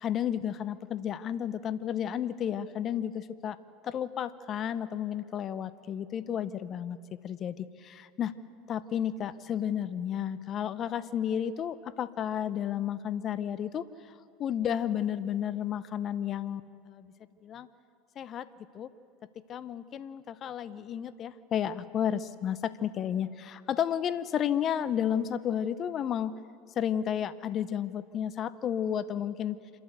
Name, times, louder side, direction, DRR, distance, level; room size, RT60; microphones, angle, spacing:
voice 1, 0.0-3.6 3.8-7.0 7.2-8.4 8.7-14.1 14.4-17.1 17.4-17.7 18.2-18.5 18.7-18.9 19.5-26.3 26.8-29.6, left 9 dB, 40° left, 16 dB, 0.8 m, -32 dB
27.0 x 13.0 x 8.2 m, 2.6 s
supercardioid pair, 100°, 0 cm